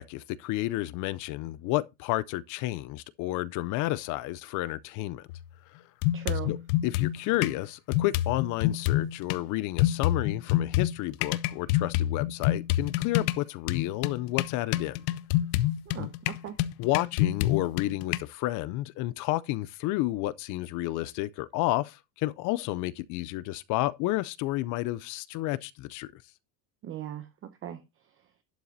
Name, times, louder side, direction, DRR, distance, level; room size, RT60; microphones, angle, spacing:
voice 1, 0.0-5.3 5.7-5.8 6.5-6.6 6.8-15.0 16.0-16.1 16.8-26.2, left 17 dB, 45° left, 0.4 m, -31 dB
sound 1, 5.3-5.4 6.0-7.6 7.9-9.4 9.8-18.2, left 14 dB, 90° left, 0.8 m, -27 dB
voice 2, 6.1-6.5 15.9-16.6 26.8-27.8, right 11 dB, 30° right, 0.7 m, -38 dB
11.5 x 5.7 x 4.0 m
cardioid pair, 170°, 47 cm